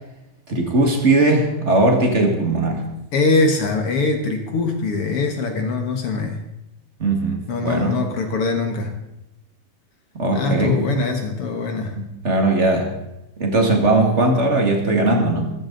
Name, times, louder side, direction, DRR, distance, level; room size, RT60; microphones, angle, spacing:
voice 1, 0.5-2.8 7.0-8.0 10.1-10.8 11.9-12.9 13.4-15.5, right 2 dB, 30° right, 2 dB, 1.3 m, -19 dB
voice 2, 3.1-6.4 7.5-9.0 10.3-12.0, left 3 dB, 60° left, 5 dB, 1.6 m, -22 dB
15.5 x 15.0 x 4.0 m, 0.91 s
omnidirectional pair, 4.3 m